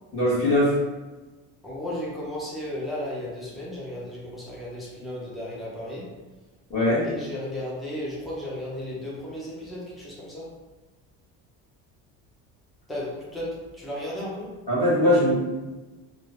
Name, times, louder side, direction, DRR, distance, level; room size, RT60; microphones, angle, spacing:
voice 1, 0.1-0.7 6.7-7.0 14.7-15.4, left 1 dB, 20° left, -10 dB, 1.0 m, -21 dB
voice 2, 1.6-6.1 7.0-10.5 12.9-14.5, left 1 dB, ahead, -7 dB, 0.4 m, -34 dB
3.1 x 2.1 x 2.5 m, 1.2 s
cardioid pair, 165°, 36 cm